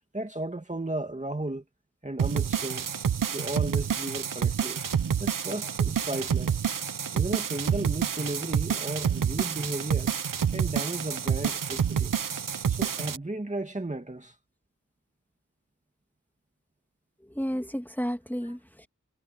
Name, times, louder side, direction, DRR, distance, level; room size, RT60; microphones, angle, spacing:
voice 1, 0.1-1.6 2.0-2.9 3.3-4.8 5.2-6.6 7.1-10.1 10.5-12.1 12.7-14.4, right 2 dB, 25° right, 2.1 m, -34 dB
sound 1, 2.2-13.2, right 7 dB, 85° right, 0.9 m, -28 dB
voice 2, 17.2-18.9, equal, 5° left, 2.6 m, -32 dB
wide cardioid pair, 75°, 32 cm